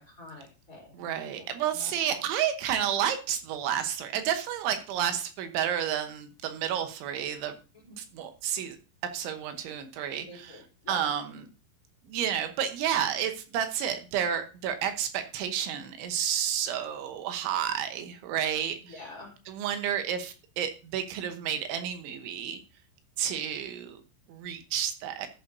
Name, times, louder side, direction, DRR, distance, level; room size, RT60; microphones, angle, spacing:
voice 1, 0.0-2.3 7.7-8.0 10.2-11.1 18.8-19.3, left 3 dB, 20° left, -3 dB, 3.7 m, -47 dB
voice 2, 1.0-7.5 8.0-8.8 9.1-10.6 10.9-11.2 12.1-19.0 19.5-22.6 23.2-24.0 24.3-25.3, right 9 dB, 75° right, 8 dB, 3.3 m, -31 dB
14.0 x 9.3 x 2.7 m, 0.33 s
omnidirectional pair, 5.8 m